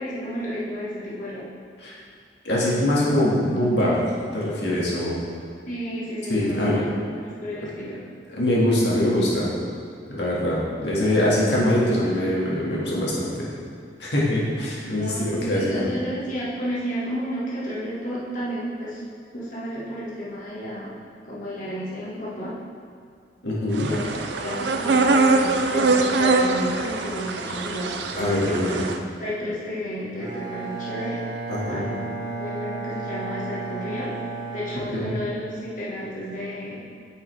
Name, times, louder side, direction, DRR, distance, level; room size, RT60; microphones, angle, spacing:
voice 1, 0.0-1.5 5.7-8.0 14.8-19.0 19.3-20.9 21.2-22.5 23.8-27.9 28.4-28.8 29.2-31.2 31.7-34.1 34.5-36.8, equal, 45° left, -8 dB, 1.7 m, -32 dB
voice 2, 2.4-4.0 4.3-5.2 6.3-6.8 8.3-9.5 10.1-13.5 14.0-15.9 23.4-23.9 28.2-28.8 31.5-31.8 34.9-35.1, left 1 dB, 80° left, -6 dB, 1.9 m, -23 dB
sound 1, 23.7-29.0, right 3 dB, 75° right, 0.5 m, -23 dB
Bowed string instrument, 30.2-35.7, right 3 dB, 20° right, 1.0 m, -33 dB
9.3 x 5.6 x 3.4 m, 2.3 s
head